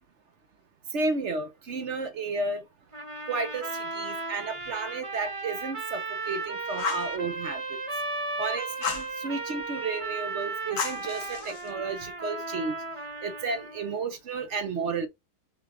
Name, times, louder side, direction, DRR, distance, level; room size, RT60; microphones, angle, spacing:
voice 1, 0.9-2.6 3.3-7.6 8.4-12.8 13.2-15.1, right 3 dB, 55° right, 0.9 m, -32 dB
sound 1, 2.9-13.9, right 3 dB, 30° right, 0.7 m, -35 dB
Fire, 6.8-7.1 8.8-9.1 10.8-11.7, left 5 dB, 75° left, 1.5 m, -32 dB
5.9 x 2.3 x 3.6 m
omnidirectional pair, 1.6 m